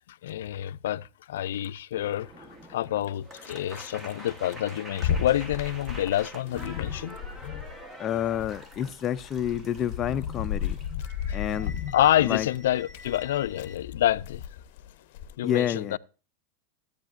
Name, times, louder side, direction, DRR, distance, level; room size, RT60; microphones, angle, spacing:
voice 1, 0.0-7.2 11.3-11.4 11.9-14.4 15.4-16.0, left 12 dB, 85° left, 0.4 m, -28 dB
sound 1, 1.9-13.8, equal, 15° right, 1.1 m, -46 dB
sound 2, 5.0-7.8 8.1-15.3, left 9 dB, 55° left, 0.8 m, -34 dB
voice 2, 8.0-10.8 11.3-11.8 12.2-12.5 15.4-16.0, left 10 dB, 25° left, 0.5 m, -29 dB
13.0 x 8.6 x 2.4 m
supercardioid pair, 160°, 0 cm